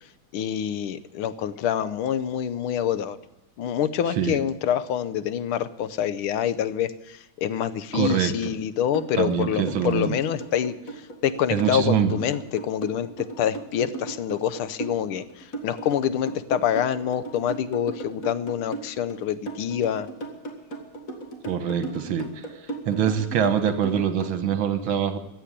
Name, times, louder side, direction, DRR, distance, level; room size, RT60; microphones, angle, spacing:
voice 1, 0.3-3.2 3.6-10.7 11.2-20.1, left 9 dB, 90° left, 14 dB, 1.7 m, -26 dB
voice 2, 7.9-8.5 9.1-10.2 11.5-12.1 21.5-22.3 22.9-25.2, right 8 dB, 75° right, 9 dB, 2.0 m, -24 dB
sound 1, 8.9-24.3, right 2 dB, 40° left, 2.4 m, -36 dB
15.5 x 8.9 x 9.9 m, 0.96 s
omnidirectional pair, 2.3 m